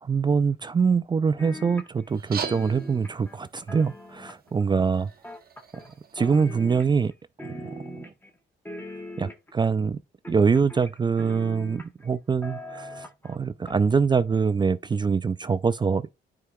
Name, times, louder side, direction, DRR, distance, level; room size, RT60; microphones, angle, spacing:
voice 1, 0.0-5.1 6.1-7.1 7.4-8.0 9.2-10.0 10.3-16.1, right 5 dB, 25° right, 0.3 m, -24 dB
sound 1, 1.4-2.2 2.4-4.6 5.2-5.9 6.2-7.1 7.4-8.3 8.6-9.6 10.2-12.1 12.4-13.4 13.7-13.8, left 1 dB, 10° left, 1.2 m, -41 dB
sound 2, 2.1-7.1, right 7 dB, 50° right, 1.0 m, -41 dB
9.4 x 4.8 x 2.3 m
cardioid pair, 90°, 20 cm